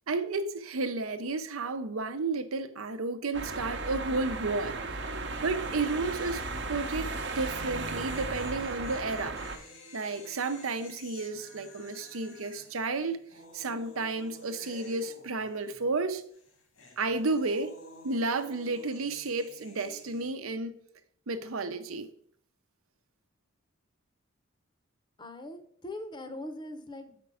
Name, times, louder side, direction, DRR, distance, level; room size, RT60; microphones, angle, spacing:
voice 1, 0.1-4.8 5.4-6.4 6.7-7.1 7.4-9.4 9.9-13.2 13.5-16.2 17.0-17.8 18.0-20.8 21.3-22.1, right 3 dB, 90° right, 0.8 m, -32 dB
sound 1, 3.3-9.6, right 3 dB, 55° right, 0.8 m, -35 dB
sound 2, 4.3-4.7 4.9-5.0 7.7-16.0 16.3-20.3, left 1 dB, 80° left, 1.7 m, -51 dB
voice 2, 25.2-27.2, left 1 dB, 20° left, 0.7 m, -41 dB
7.0 x 5.2 x 4.8 m
head